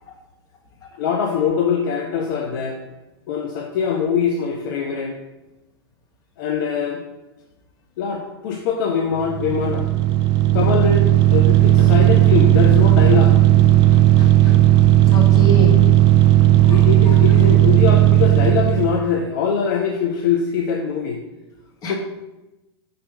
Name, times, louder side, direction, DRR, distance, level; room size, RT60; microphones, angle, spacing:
voice 1, 1.0-2.8 3.3-5.1 6.4-7.0 8.0-9.9 10.5-13.4 16.7-21.2 21.9-22.0, left 6 dB, 50° left, 1 dB, 0.7 m, -22 dB
sound 1, 9.2-19.1, right 14 dB, 35° right, 0.4 m, -14 dB
voice 2, 13.9-14.6 15.1-15.8 16.6-16.8 21.8-21.9, equal, 30° left, 0 dB, 1.3 m, -26 dB
5.4 x 4.1 x 5.2 m, 1.0 s
figure-of-eight pair, 95°, 14 cm